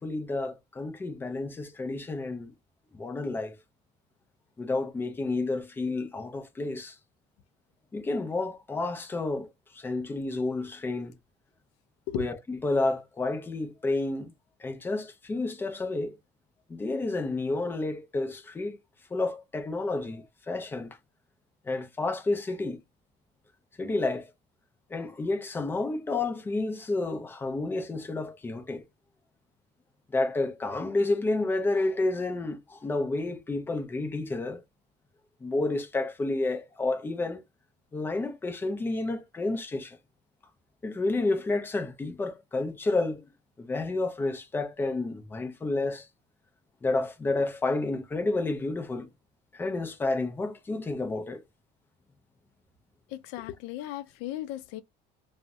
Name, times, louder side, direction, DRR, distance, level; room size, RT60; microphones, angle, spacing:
voice 1, 0.0-2.5 2.9-3.5 4.6-7.0 7.9-9.5 9.7-11.1 12.1-14.3 14.6-16.2 16.7-18.8 19.1-21.0 21.7-22.8 23.8-24.3 24.9-28.8 30.1-34.6 35.4-37.4 37.9-40.0 40.8-43.2 43.6-46.1 46.8-49.1 49.5-51.4, left 2 dB, 10° left, 0.4 m, -30 dB
voice 2, 53.1-54.8, left 13 dB, 90° left, 0.4 m, -36 dB
2.6 x 2.1 x 3.4 m
cardioid pair, 160°, 17 cm